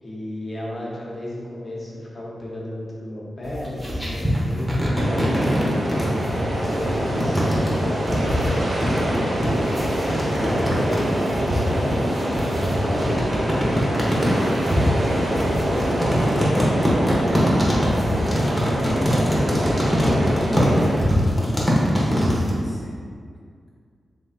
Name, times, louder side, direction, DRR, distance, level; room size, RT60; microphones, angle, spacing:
voice 1, 0.0-5.4 6.5-9.8 10.6-14.1 14.6-14.9 15.4-17.3 18.0-22.4, left 1 dB, 45° left, -5 dB, 1.1 m, -34 dB
sound 1, 3.4-22.5, equal, 5° right, 1.1 m, -23 dB
sound 2, 4.9-21.0, equal, 80° right, 0.9 m, -26 dB
voice 2, 6.1-6.7 14.8-15.3 22.0-23.0, left 1 dB, 15° left, -6 dB, 0.6 m, -39 dB
3.6 x 3.1 x 4.2 m, 2.1 s
cardioid pair, 80°, 0 cm